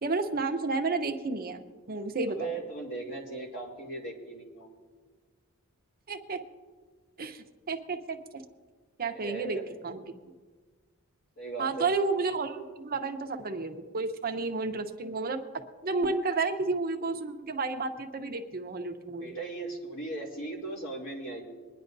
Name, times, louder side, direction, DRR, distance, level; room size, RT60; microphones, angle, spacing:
voice 1, 0.0-1.6 1.9-2.5 6.1-6.4 7.2-8.4 9.0-9.6 9.8-10.0 11.6-15.4 15.8-19.3, right 3 dB, 45° right, 5 dB, 0.9 m, -31 dB
voice 2, 2.3-4.7 9.1-9.8 11.4-11.9 19.2-21.4, right 3 dB, 60° left, -2 dB, 2.9 m, -38 dB
24.0 x 10.0 x 2.7 m, 1.4 s
head